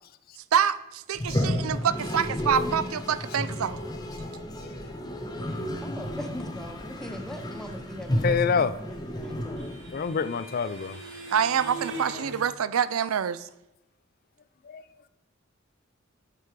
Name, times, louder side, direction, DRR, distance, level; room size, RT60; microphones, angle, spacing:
voice 1, 0.5-3.8 11.3-13.5, right 8 dB, 85° right, 16 dB, 0.4 m, -26 dB
Toilet flush, 1.1-10.2, left 1 dB, 20° left, 1.0 m, -32 dB
voice 2, 5.8-9.8, equal, ahead, 5 dB, 0.7 m, -41 dB
voice 3, 8.2-8.7 9.9-11.0 14.7-14.8, left 6 dB, 45° left, 15 dB, 0.4 m, -26 dB
sound 1, 8.7-12.4, right 2 dB, 60° right, 2.1 m, -41 dB
8.2 x 6.9 x 4.7 m, 0.91 s
head